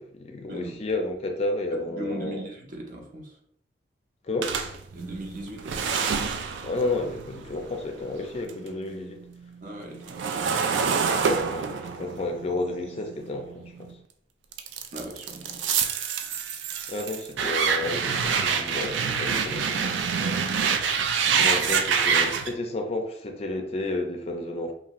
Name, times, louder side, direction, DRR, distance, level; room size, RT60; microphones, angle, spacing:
voice 1, 0.0-2.4 4.2-4.5 6.6-9.2 11.5-13.9 16.9-20.4 21.3-24.7, left 2 dB, 35° left, 4 dB, 0.4 m, -31 dB
voice 2, 1.7-3.4 4.9-6.3 9.6-10.7 14.9-15.8, right 1 dB, 50° right, 0 dB, 0.6 m, -39 dB
sound 1, 4.4-8.7 9.0-13.9 14.5-22.5, right 6 dB, 90° right, 0.3 m, -27 dB
2.6 x 2.5 x 2.9 m, 0.70 s
head